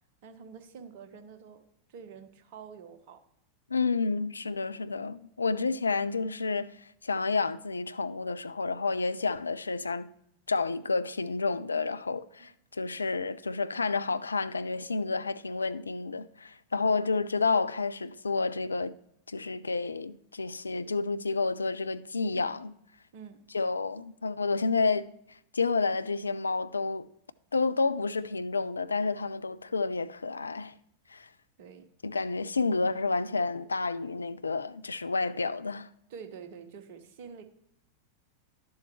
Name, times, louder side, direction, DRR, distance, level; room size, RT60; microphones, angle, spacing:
voice 1, 0.2-1.6 1.9-3.2 23.1-23.4 31.6-31.9 36.1-37.4, right 6 dB, 50° right, 1.1 m, -47 dB
voice 2, 3.7-6.7 7.0-10.1 10.5-19.0 19.3-22.7 23.5-25.1 25.5-27.1 27.5-30.7 31.1-31.3 32.0-35.9, left 4 dB, 75° left, 0.3 m, -30 dB
11.5 x 7.1 x 3.1 m
figure-of-eight pair, 90°, 0 cm